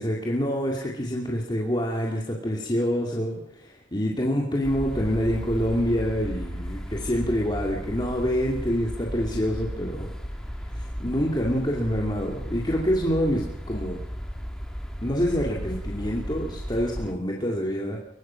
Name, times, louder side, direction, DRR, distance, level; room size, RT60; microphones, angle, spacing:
voice 1, 0.0-10.1 10.7-14.0 15.0-18.0, equal, 25° left, -2 dB, 2.5 m, -26 dB
sound 1, 4.6-17.1, equal, 5° left, 2.5 m, -35 dB
23.0 x 21.0 x 5.9 m, 0.78 s
head